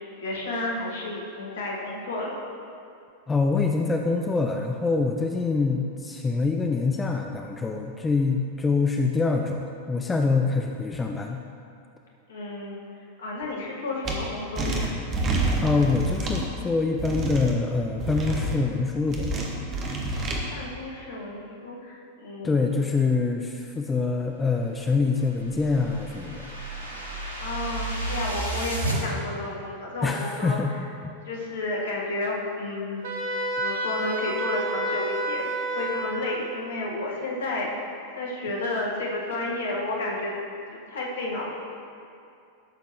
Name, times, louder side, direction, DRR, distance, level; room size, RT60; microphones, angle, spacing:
voice 1, 0.2-2.4 12.3-12.8 13.2-14.9 20.5-22.7 27.4-30.8 31.2-37.7 38.2-40.3 40.7-41.6, left 2 dB, 60° left, -2 dB, 1.6 m, -31 dB
voice 2, 3.3-11.4 15.6-19.5 22.4-26.5 30.0-30.7, left 4 dB, 15° left, 3 dB, 0.5 m, -25 dB
sound 1, 14.1-14.2 14.6-16.5 17.0-17.5 18.0-18.6 19.1-20.4, right 2 dB, 30° right, 1.3 m, -27 dB
sound 2, 24.9-29.0, right 2 dB, 75° right, 1.4 m, -32 dB
Wind instrument woodwind instrument, 33.0-36.5, right 1 dB, 55° right, 1.2 m, -30 dB
12.5 x 6.9 x 3.1 m, 2.5 s
figure-of-eight pair, 90°, 0 cm